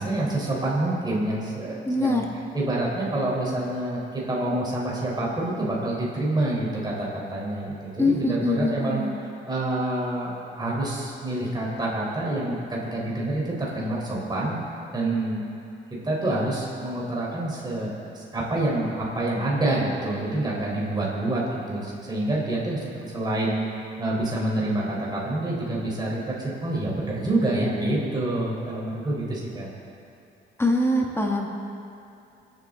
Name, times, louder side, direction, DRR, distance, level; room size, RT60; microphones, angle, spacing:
voice 1, 0.0-2.2 2.5-9.0 9.4-14.6 14.9-15.4 16.0-29.7, right 1 dB, 20° right, -5 dB, 4.0 m, -27 dB
voice 2, 1.9-2.3 8.0-9.1 30.6-31.5, left 2 dB, 10° left, 0 dB, 1.7 m, -23 dB
26.0 x 9.3 x 3.8 m, 2.7 s
cardioid pair, 90°, 20 cm